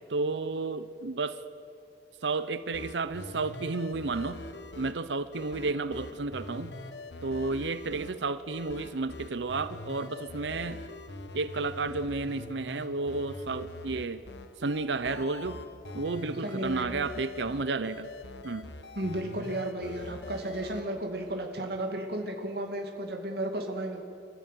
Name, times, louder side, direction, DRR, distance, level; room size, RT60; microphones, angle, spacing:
voice 1, 0.1-1.4 2.2-4.4 4.8-6.7 7.2-10.8 11.3-14.2 14.6-15.6 15.9-18.1 18.4-18.7, right 3 dB, 90° right, 13 dB, 0.7 m, -32 dB
sound 1, 2.7-20.8, left 2 dB, 75° left, 1.4 m, -44 dB
voice 2, 16.4-17.0 18.9-24.0, right 1 dB, 60° right, 2 dB, 2.5 m, -34 dB
26.5 x 14.5 x 9.4 m, 2.5 s
head